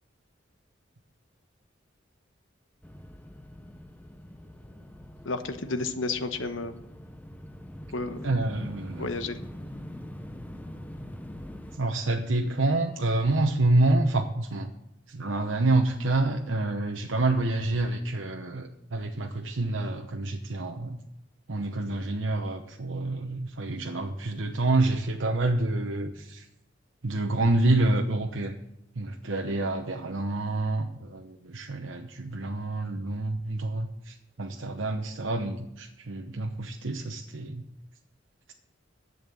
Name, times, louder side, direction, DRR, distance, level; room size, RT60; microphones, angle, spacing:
sound 1, 2.8-11.8, equal, 10° left, 0.7 m, -43 dB
voice 1, 5.2-6.8 7.9-8.3 9.0-9.4, left 3 dB, 85° left, 9 dB, 1.1 m, -31 dB
voice 2, 8.2-9.1 11.7-14.7 15.1-21.0 21.5-26.5 27.0-28.6 28.9-37.6, right 2 dB, 75° right, 3 dB, 0.9 m, -27 dB
11.0 x 8.0 x 7.1 m, 0.88 s
head